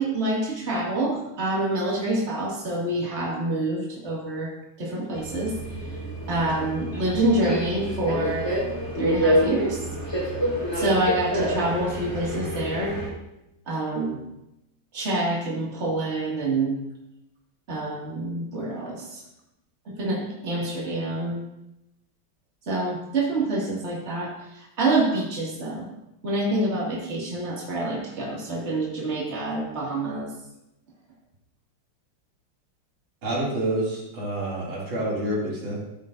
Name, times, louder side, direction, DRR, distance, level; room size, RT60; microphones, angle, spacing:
voice 1, 0.0-4.5 4.8-5.5 6.3-8.5 8.9-9.8 10.8-12.9 13.7-14.2 14.9-16.8 17.7-19.2 19.9-21.4 22.7-25.9 26.2-30.3, right 2 dB, 35° right, -4 dB, 2.4 m, -27 dB
Subway metro underground, 5.1-13.1, equal, 15° left, 2.3 m, -27 dB
voice 2, 33.2-35.8, right 1 dB, 80° right, -5 dB, 3.4 m, -28 dB
14.0 x 7.4 x 2.6 m, 0.89 s
omnidirectional pair, 2.2 m